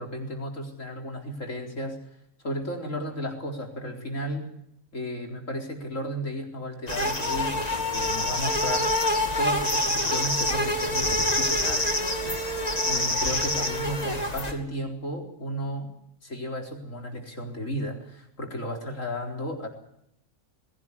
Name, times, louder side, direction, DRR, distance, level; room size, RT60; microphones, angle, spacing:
voice 1, 0.0-2.0 2.4-4.5 4.9-8.9 9.4-12.5 12.9-15.9 16.2-19.7, equal, 75° left, 2 dB, 4.5 m, -34 dB
sound 1, 6.9-14.5, left 1 dB, 30° left, 2.8 m, -26 dB
21.0 x 17.0 x 9.8 m, 0.77 s
omnidirectional pair, 1.3 m